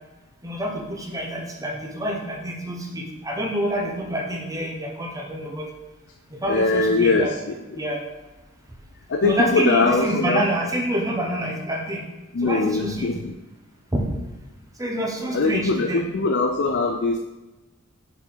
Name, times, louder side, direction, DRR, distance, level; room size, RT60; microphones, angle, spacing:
voice 1, 0.4-5.7 6.3-8.0 9.2-12.0 12.4-13.1 13.9-14.1 14.8-16.1, equal, 15° right, 0 dB, 0.9 m, -27 dB
voice 2, 6.5-7.8 9.1-10.4 12.3-13.3 15.3-17.2, left 3 dB, 50° left, 4 dB, 0.5 m, -22 dB
6.9 x 4.3 x 3.9 m, 1.1 s
head